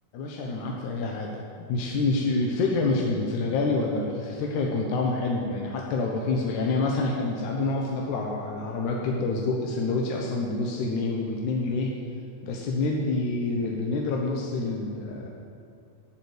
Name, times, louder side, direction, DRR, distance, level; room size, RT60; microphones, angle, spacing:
voice 1, 0.1-1.3 1.6-11.9 12.4-15.3, left 3 dB, 65° left, -1 dB, 2.2 m, -27 dB
11.5 x 7.1 x 8.0 m, 2.4 s
omnidirectional pair, 4.3 m